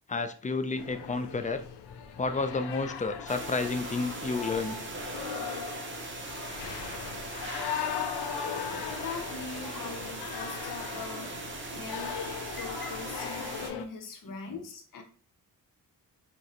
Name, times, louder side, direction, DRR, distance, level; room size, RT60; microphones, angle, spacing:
voice 1, 0.1-1.6 2.2-4.8, left 3 dB, 20° left, 9 dB, 0.4 m, -31 dB
sound 1, 0.8-13.9, left 8 dB, 85° left, 0.5 m, -38 dB
sound 2, 3.3-13.7, right 3 dB, 30° right, 0.7 m, -40 dB
voice 2, 8.8-11.3 11.7-12.2 12.5-15.0, left 4 dB, 55° left, 2 dB, 0.8 m, -41 dB
3.7 x 2.2 x 2.9 m, 0.40 s
cardioid pair, 60°, 40 cm